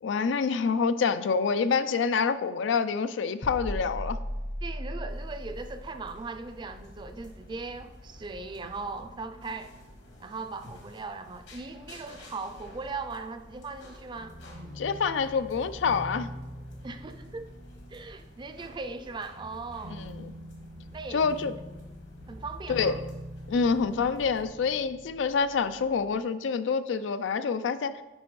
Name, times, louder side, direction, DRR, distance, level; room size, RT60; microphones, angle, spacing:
voice 1, 0.0-4.2 14.8-16.3 19.9-20.3 21.1-21.5 22.7-22.9 23.5-28.0, left 5 dB, 90° left, 12 dB, 0.4 m, -27 dB
sound 1, 3.4-9.1 9.4-9.6, equal, 50° left, 0.8 m, -38 dB
voice 2, 4.6-9.7 10.2-14.4 16.8-17.5 17.9-20.0 20.9-21.4 22.3-23.0, right 3 dB, 25° right, 9 dB, 0.4 m, -39 dB
sound 2, 5.1-24.5, left 1 dB, 70° left, 1.5 m, -51 dB
sound 3, 14.2-19.0 19.3-26.2, equal, 90° right, 2.0 m, -44 dB
11.0 x 4.2 x 3.1 m, 1.1 s
head